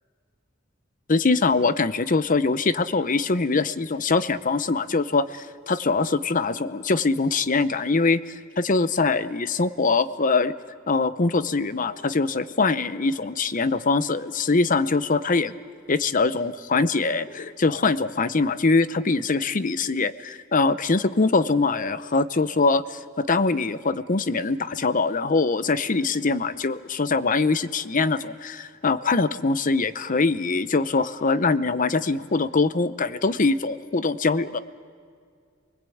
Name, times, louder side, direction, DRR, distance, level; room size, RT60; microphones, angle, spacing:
voice 1, 1.1-8.2 8.6-10.5 10.9-15.5 15.9-34.6, left 3 dB, 40° left, 13 dB, 0.8 m, -23 dB
28.5 x 21.0 x 8.6 m, 2.2 s
head